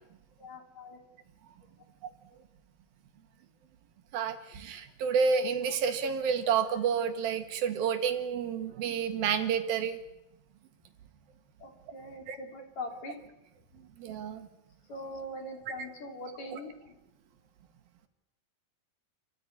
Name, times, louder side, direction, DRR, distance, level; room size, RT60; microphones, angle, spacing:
voice 1, 0.4-1.0 11.6-13.2 14.9-16.9, left 1 dB, 50° left, 3 dB, 4.4 m, -42 dB
voice 2, 4.1-10.0 12.3-12.4 14.0-14.5 16.5-16.6, right 6 dB, 85° right, 7 dB, 3.7 m, -29 dB
29.0 x 14.5 x 9.7 m, 0.87 s
omnidirectional pair, 4.1 m